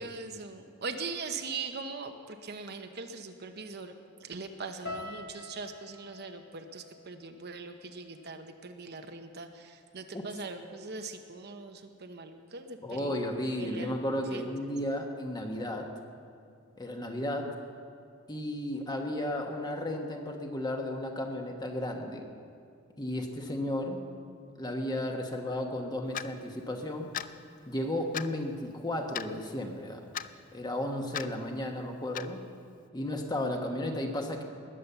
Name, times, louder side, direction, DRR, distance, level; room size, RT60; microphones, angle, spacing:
voice 1, 0.0-3.9 4.2-13.2 13.6-13.9 14.3-14.7, right 4 dB, 50° right, 6 dB, 0.9 m, -41 dB
sound 1, 4.9-9.1 9.3-10.1 10.7-10.9, left 2 dB, 60° left, 1.9 m, -47 dB
voice 2, 12.8-15.9 16.8-17.6 18.3-22.3 23.0-24.0 24.6-27.1 27.7-30.0 30.5-32.4 32.9-34.4, left 1 dB, 20° left, 3 dB, 1.3 m, -34 dB
Clock, 26.1-26.3 27.1-27.3 28.1-28.3 29.1-29.3 30.1-30.3 31.1-31.3 32.1-32.3, left 9 dB, 40° left, 0.4 m, -36 dB
20.0 x 8.6 x 6.9 m, 2.3 s
head